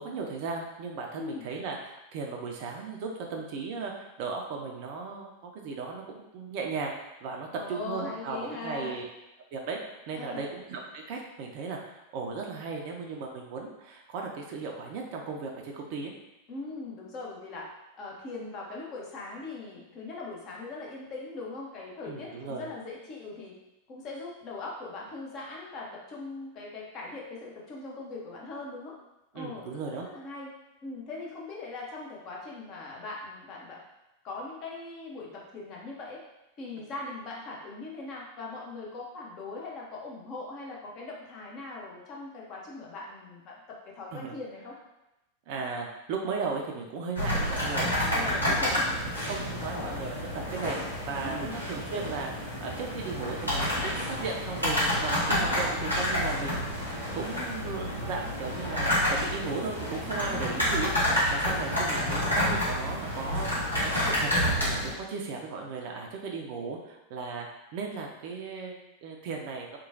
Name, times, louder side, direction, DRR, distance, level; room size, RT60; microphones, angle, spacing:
voice 1, 0.0-6.0 6.3-9.0 9.5-9.8 10.1-16.1 22.1-22.7 29.3-30.1 44.1-44.3 45.5-48.8 49.2-50.8 51.1-60.9 61.3-67.5 67.7-69.8, right 4 dB, 45° right, 1 dB, 0.4 m, -36 dB
voice 2, 1.1-1.4 7.5-9.0 10.2-10.5 16.5-17.7 18.0-23.5 23.9-28.9 29.3-30.5 30.8-33.8 34.2-36.2 36.6-44.7 48.1-49.2 51.2-51.6 60.2-60.9, left 3 dB, 35° left, -2 dB, 0.7 m, -40 dB
sound 1, 47.1-64.9, left 1 dB, 85° left, 0.9 m, -29 dB
2.9 x 2.2 x 2.6 m, 0.94 s
figure-of-eight pair, 90°, 0 cm